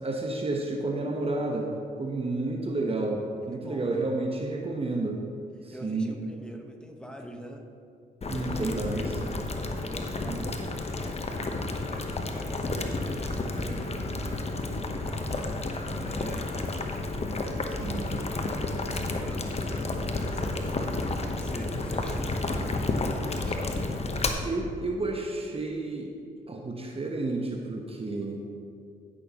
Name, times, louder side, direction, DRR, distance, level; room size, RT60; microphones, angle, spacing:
voice 1, 0.0-1.7 2.0-5.2 5.6-6.1 8.3-9.1 10.3-10.5 17.8-18.1 24.4-26.1 26.5-28.4, right 2 dB, 30° right, 1 dB, 1.1 m, -31 dB
voice 2, 3.4-4.1 5.7-7.7 8.2-9.3 9.8-14.5 14.9-16.5 17.5-23.9, equal, 5° left, 3 dB, 1.3 m, -45 dB
Boiling, 8.2-24.3, left 2 dB, 35° left, 1.0 m, -31 dB
15.0 x 6.3 x 3.0 m, 2.4 s
supercardioid pair, 50°, 18 cm